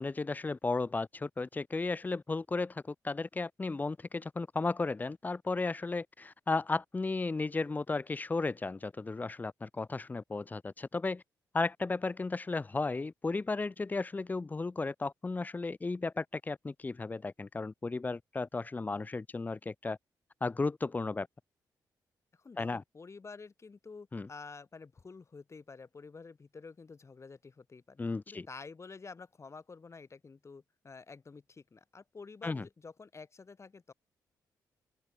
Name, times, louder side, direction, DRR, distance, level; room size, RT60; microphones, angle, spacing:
voice 1, 0.0-11.2 11.5-20.0 20.4-21.3 22.6-22.8 24.1-24.3 28.0-28.5 32.4-32.7, left 3 dB, 25° left, 0.4 m, -34 dB
voice 2, 22.3-33.9, left 4 dB, 40° left, 2.9 m, -50 dB
open air
cardioid pair, 65°, 8 cm